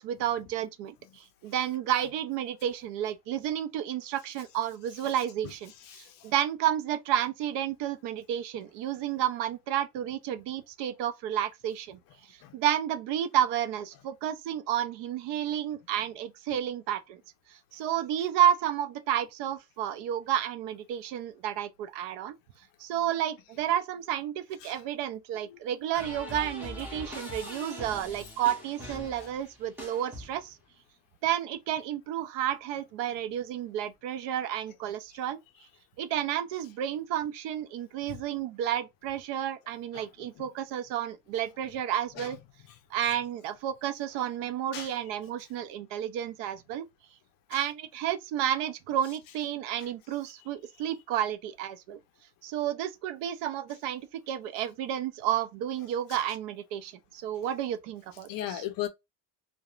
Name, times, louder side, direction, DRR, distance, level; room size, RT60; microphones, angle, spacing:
voice 1, 0.0-12.0 12.3-17.2 17.7-22.4 22.8-30.6 31.2-35.4 36.0-42.4 42.9-46.8 47.5-52.0 52.4-58.6, right 10 dB, 60° right, 0.5 m, -31 dB
sound 1, 25.9-30.6, left 1 dB, 5° right, 0.7 m, -42 dB
voice 2, 58.3-58.9, left 12 dB, 45° left, 0.5 m, -36 dB
2.9 x 2.1 x 2.3 m
cardioid pair, 150°, 48 cm